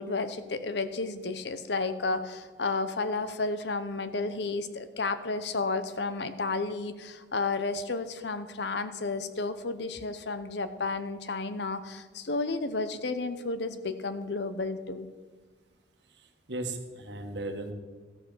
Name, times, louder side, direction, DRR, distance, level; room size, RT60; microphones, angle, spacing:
voice 1, 0.0-15.1, left 3 dB, 65° left, 11 dB, 0.8 m, -32 dB
voice 2, 16.1-17.7, right 2 dB, 65° right, 5 dB, 1.4 m, -37 dB
13.5 x 7.4 x 6.2 m, 1.3 s
head